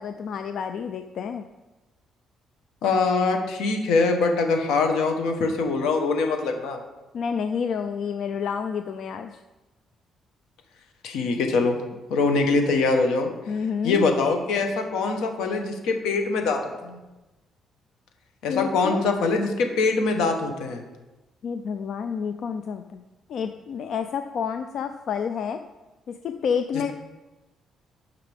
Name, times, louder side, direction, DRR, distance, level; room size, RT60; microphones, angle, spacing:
voice 1, 0.0-1.5 7.1-9.4 13.5-14.0 18.5-19.0 21.4-23.0 23.3-25.6 26.1-26.9, left 6 dB, 65° left, 8 dB, 0.4 m, -29 dB
voice 2, 2.8-6.8 11.0-11.8 12.1-13.3 13.8-17.0 18.4-20.8, left 3 dB, 90° left, 4 dB, 1.2 m, -23 dB
11.5 x 5.7 x 3.5 m, 1.1 s
cardioid pair, 90°, 0 cm